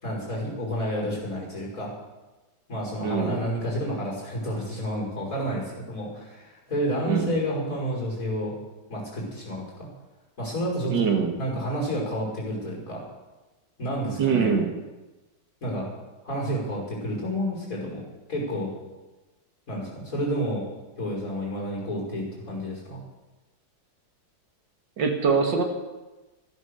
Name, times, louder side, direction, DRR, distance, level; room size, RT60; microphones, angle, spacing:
voice 1, 0.0-1.9 2.7-8.5 8.9-9.9 10.4-11.0 11.4-13.0 13.8-14.6 15.6-15.9 16.2-18.0 18.3-18.7 19.7-20.6 21.0-23.0, equal, 45° left, -2 dB, 6.1 m, -30 dB
voice 2, 3.0-3.4 7.1-7.3 10.9-11.3 14.2-14.7 25.0-25.6, right 6 dB, 80° right, 4 dB, 2.4 m, -23 dB
14.5 x 12.5 x 6.8 m, 1.1 s
omnidirectional pair, 1.9 m